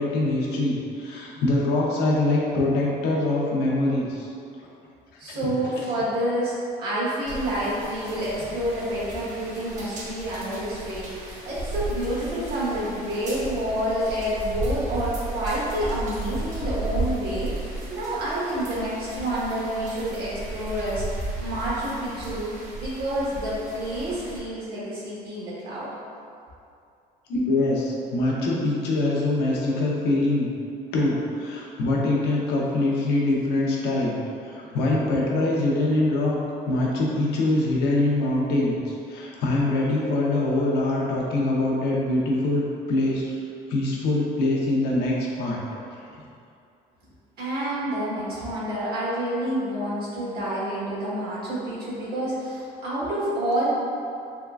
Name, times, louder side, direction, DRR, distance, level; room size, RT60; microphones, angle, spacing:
voice 1, 0.0-4.3 5.3-5.4 5.8-5.9 27.3-30.5 30.9-36.4 36.7-43.4 43.7-45.6, left 2 dB, 85° left, -4 dB, 0.7 m, -24 dB
voice 2, 5.2-6.5 6.8-21.0 21.4-22.5 22.8-25.9 47.4-53.7, right 1 dB, 70° right, -8 dB, 1.3 m, -28 dB
sound 1, 7.3-24.4, right 2 dB, 50° right, 0.9 m, -34 dB
3.6 x 3.1 x 2.4 m, 2.5 s
cardioid pair, 110°, 17 cm